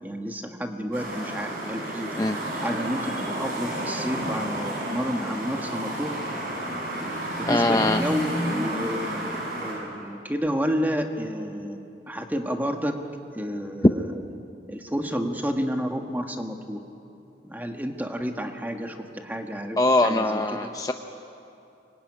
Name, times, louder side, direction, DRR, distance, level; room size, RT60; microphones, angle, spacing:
voice 1, 0.0-2.1 2.6-6.2 7.4-13.0 13.3-14.2 14.7-16.8 17.4-20.7, equal, 10° right, 4 dB, 1.6 m, -30 dB
sound 1, 0.9-9.7, right 1 dB, 50° right, 7.8 m, -31 dB
voice 2, 7.5-8.0 19.8-20.9, left 2 dB, 20° left, 6 dB, 0.7 m, -22 dB
25.0 x 21.5 x 9.8 m, 2.8 s
head